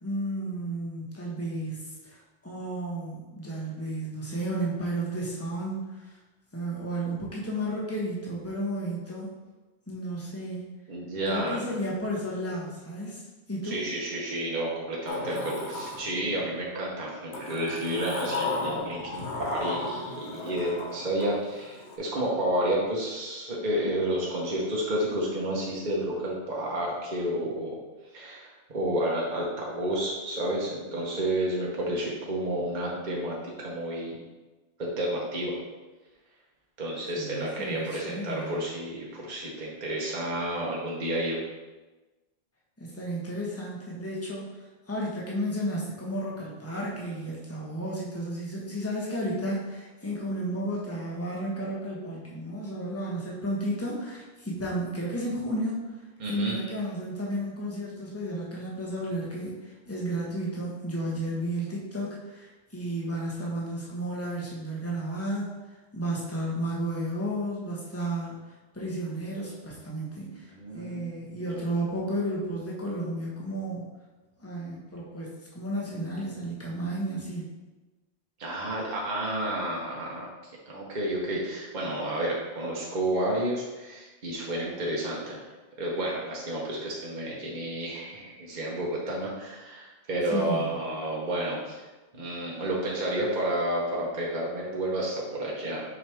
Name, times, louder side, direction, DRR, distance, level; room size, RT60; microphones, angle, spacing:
voice 1, 0.0-6.2 6.5-9.3 9.9-10.6 11.3-13.8 37.1-38.6 42.8-44.6 44.9-55.9 56.3-65.5 65.9-73.8 74.4-77.4 90.3-90.7, right 1 dB, 15° left, -5 dB, 1.3 m, -33 dB
voice 2, 10.9-11.6 13.6-27.8 28.1-34.2 34.8-35.6 36.8-41.4 56.2-56.5 70.6-71.6 78.4-85.5 85.8-91.9 92.1-95.8, right 1 dB, 45° right, -4 dB, 1.1 m, -31 dB
Sliding door, 15.1-16.6 17.3-22.0, left 3 dB, 90° left, 1.2 m, -35 dB
6.2 x 5.1 x 3.5 m, 1.2 s
omnidirectional pair, 1.1 m